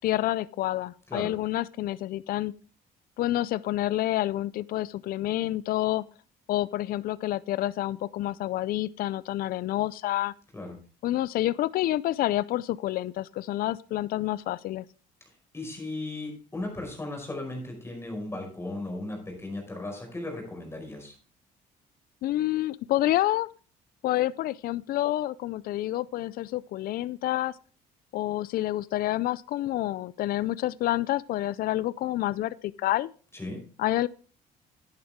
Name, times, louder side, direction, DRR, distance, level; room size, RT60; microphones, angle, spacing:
voice 1, 0.0-2.5 3.2-6.0 6.5-10.3 11.0-14.8 22.2-23.5 24.0-27.5 28.1-33.1 33.8-34.1, left 15 dB, 60° left, 0.4 m, -28 dB
voice 2, 15.5-21.1 33.3-33.6, left 2 dB, 15° left, 5.0 m, -36 dB
10.5 x 9.5 x 3.6 m
cardioid pair, 110°, 17 cm